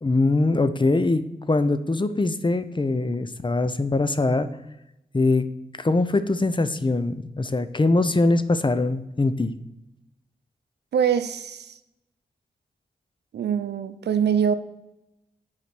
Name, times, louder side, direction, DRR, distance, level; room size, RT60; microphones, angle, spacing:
voice 1, 0.0-4.5 5.1-5.5 5.8-9.5, left 2 dB, 30° left, 11 dB, 0.7 m, -22 dB
voice 2, 10.9-11.8 13.3-14.5, right 8 dB, 90° right, 11 dB, 0.6 m, -23 dB
7.0 x 4.9 x 6.0 m, 0.92 s
cardioid pair, 50°, 17 cm